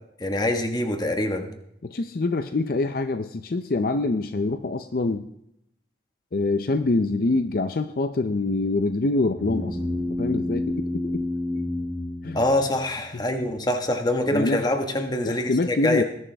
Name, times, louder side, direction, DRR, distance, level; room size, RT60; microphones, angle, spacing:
voice 1, 0.2-1.5 12.3-16.0, left 1 dB, 25° left, 5 dB, 1.3 m, -24 dB
voice 2, 1.9-5.3 6.3-9.8 10.1-11.2 12.2-12.4 14.3-14.7 15.3-16.0, left 2 dB, 55° left, 9 dB, 0.5 m, -25 dB
sound 1, 9.4-13.1, left 1 dB, 5° right, 4.6 m, -29 dB
19.5 x 11.0 x 3.4 m, 0.79 s
head